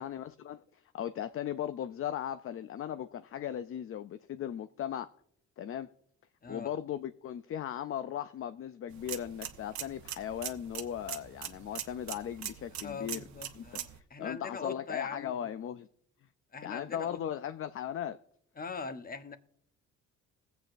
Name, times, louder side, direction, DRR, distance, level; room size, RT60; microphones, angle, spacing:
voice 1, 0.0-5.1 5.6-5.9 6.5-13.2 13.6-13.7 13.9-15.9 16.6-18.2, left 10 dB, 45° left, 0.5 m, -37 dB
sound 1, 8.9-14.0, right 10 dB, 65° right, 1.0 m, -42 dB
voice 2, 12.8-15.5 16.5-17.2 18.6-19.4, left 5 dB, 30° left, 1.0 m, -41 dB
20.0 x 8.0 x 2.6 m
cardioid pair, 90°, 30 cm